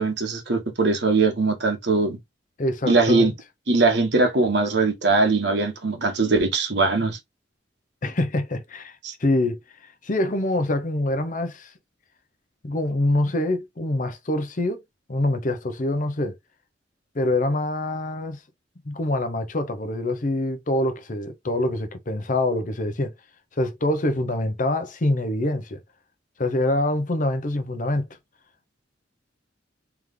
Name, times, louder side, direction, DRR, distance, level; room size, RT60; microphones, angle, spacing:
voice 1, 0.0-2.2 2.8-3.3 3.7-7.2 9.0-9.1, right 3 dB, 65° right, 1.4 m, -21 dB
voice 2, 2.6-3.3 8.0-11.7 12.6-14.8 15.1-16.3 17.1-18.4 18.8-23.1 23.6-25.8 26.4-28.1, left 1 dB, 45° left, 0.7 m, -25 dB
3.5 x 3.3 x 3.6 m
head